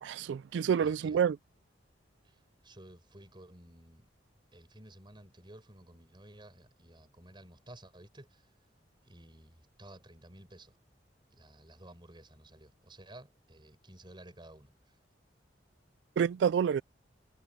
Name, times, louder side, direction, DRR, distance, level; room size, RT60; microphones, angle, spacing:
voice 1, 0.0-1.4 16.2-16.8, right 7 dB, 70° right, 0.3 m, -28 dB
voice 2, 0.8-1.2 2.2-4.1 4.5-8.5 9.0-10.7 11.3-15.0, right 1 dB, 25° right, 4.5 m, -54 dB
head